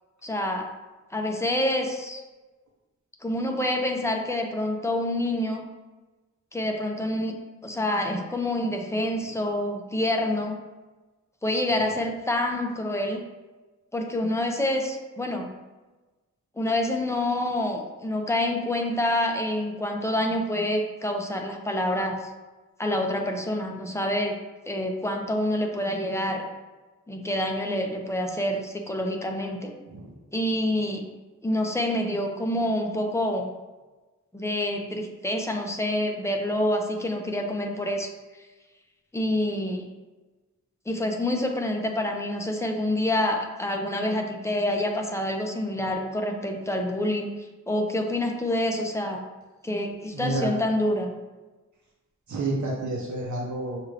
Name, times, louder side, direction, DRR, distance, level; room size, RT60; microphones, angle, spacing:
voice 1, 0.2-0.6 1.1-2.2 3.2-5.7 6.5-7.4 7.6-10.6 11.4-13.2 13.9-15.5 16.6-22.3 22.8-24.3 24.6-26.4 27.1-29.7 30.3-31.0 31.4-33.5 34.3-38.1 39.1-39.8 40.9-47.3 47.7-49.2 49.6-51.1, left 1 dB, 10° left, 2 dB, 0.5 m, -27 dB
voice 2, 50.1-50.6 52.3-53.8, right 2 dB, 75° right, -3 dB, 0.7 m, -29 dB
6.0 x 2.5 x 3.2 m, 1.2 s
wide cardioid pair, 95°, 29 cm